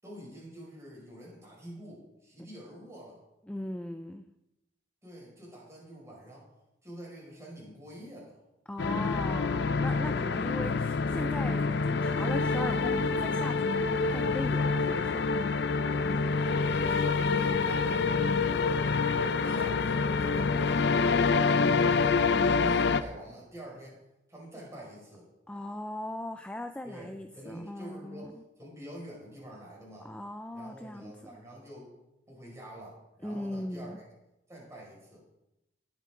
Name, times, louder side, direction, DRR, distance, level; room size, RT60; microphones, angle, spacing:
voice 1, 0.0-3.2 5.0-6.5 6.8-8.4 16.1-18.9 19.3-20.9 21.3-24.0 24.3-25.3 26.8-30.1 30.5-31.9 32.3-34.0 34.5-35.2, equal, 15° right, -4 dB, 5.6 m, -47 dB
voice 2, 3.5-4.2 8.7-15.3 25.5-28.4 30.0-31.1 33.2-34.0, left 1 dB, 5° left, 7 dB, 0.4 m, -38 dB
sound 1, 8.8-23.0, left 4 dB, 60° left, 0.6 m, -27 dB
18.5 x 8.4 x 3.8 m, 0.90 s
head